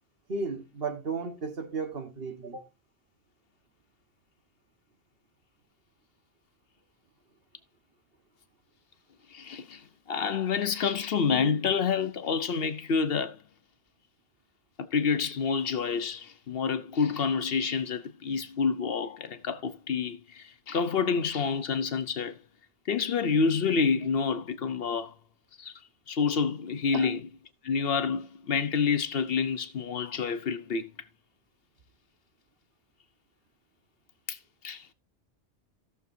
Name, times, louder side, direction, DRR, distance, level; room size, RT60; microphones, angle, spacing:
voice 1, 0.3-2.6 26.9-27.1, right 4 dB, 55° right, 1.5 m, -34 dB
voice 2, 9.3-9.8 10.1-13.4 14.8-22.4 22.9-25.1 25.6-25.7 26.1-27.2 27.6-30.9 34.3-34.4 34.6-34.9, left 5 dB, 60° left, 0.9 m, -28 dB
16.5 x 6.7 x 2.6 m
omnidirectional pair, 1.2 m